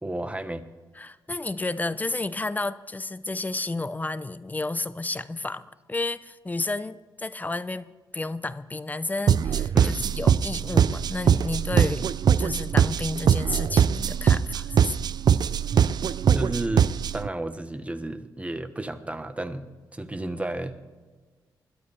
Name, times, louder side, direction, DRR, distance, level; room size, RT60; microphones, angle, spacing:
voice 1, 0.0-0.7 9.7-10.0 16.3-20.7, right 1 dB, 15° right, 9 dB, 1.2 m, -32 dB
voice 2, 1.0-7.9 8.1-12.1 12.4-15.0, left 2 dB, 20° left, 14 dB, 0.6 m, -31 dB
sound 1, 9.3-17.3, right 8 dB, 55° right, 0.4 m, -22 dB
21.0 x 12.5 x 3.4 m, 1.3 s
cardioid pair, 75°, 8 cm